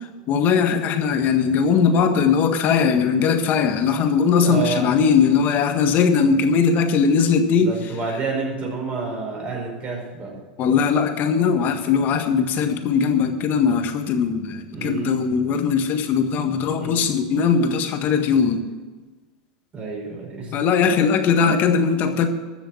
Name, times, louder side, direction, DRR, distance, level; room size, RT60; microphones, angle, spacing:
voice 1, 0.3-7.7 10.6-18.6 20.5-22.3, left 6 dB, 45° left, 6 dB, 1.7 m, -19 dB
voice 2, 4.4-4.9 7.5-10.4 14.7-15.2 16.8-17.0 19.7-20.6 21.4-21.7, right 4 dB, 30° right, -1 dB, 5.1 m, -29 dB
13.0 x 7.1 x 7.8 m, 1.3 s
hypercardioid pair, 115°, 4 cm